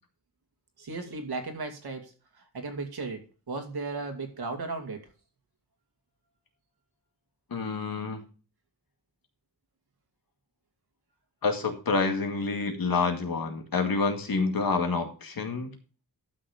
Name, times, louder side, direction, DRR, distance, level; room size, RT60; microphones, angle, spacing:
voice 1, 0.8-5.1, right 3 dB, 75° right, 5 dB, 2.3 m, -36 dB
voice 2, 7.5-8.2 11.4-15.7, left 4 dB, 65° left, 4 dB, 2.2 m, -28 dB
11.5 x 6.5 x 5.0 m, 0.35 s
wide cardioid pair, 105°, 38 cm